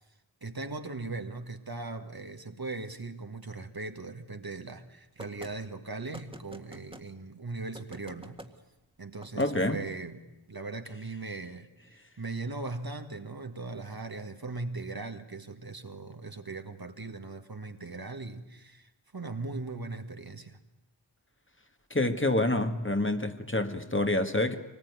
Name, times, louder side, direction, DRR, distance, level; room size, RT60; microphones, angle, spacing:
voice 1, 0.4-8.4 9.0-20.6, right 3 dB, 50° right, 1.8 m, -39 dB
sound 1, 5.2-5.5 6.1-7.1 7.7-8.5 9.2-9.5, right 1 dB, 10° right, 1.8 m, -46 dB
voice 2, 9.4-9.8 21.9-24.6, left 2 dB, 25° left, 1.6 m, -27 dB
24.0 x 19.5 x 9.6 m
wide cardioid pair, 45°, 46 cm